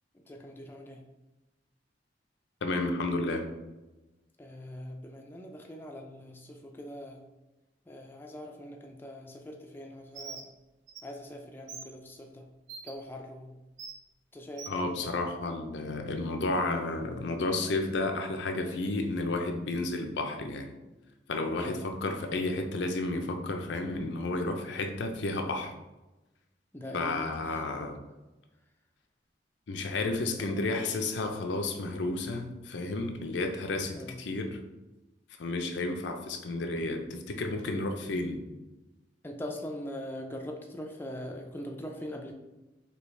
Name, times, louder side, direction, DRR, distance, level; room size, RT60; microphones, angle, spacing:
voice 1, 0.3-1.0 4.4-7.2 7.9-10.5 11.0-12.5 12.8-13.6 14.3-15.2 21.6-21.8 26.7-27.6 30.4-30.8 34.0-34.2 39.2-42.3, left 1 dB, 10° left, 1 dB, 0.4 m, -42 dB
voice 2, 2.6-3.5 14.7-20.7 21.3-25.7 26.9-28.0 29.7-34.6 35.4-38.4, left 2 dB, 75° left, 5 dB, 0.5 m, -32 dB
Bird, 10.1-10.5 10.9-11.0 11.7-11.9 12.7-12.9 13.8-14.0 14.6-14.8, right 5 dB, 80° right, 0.6 m, -42 dB
4.7 x 2.9 x 3.1 m, 1.1 s
head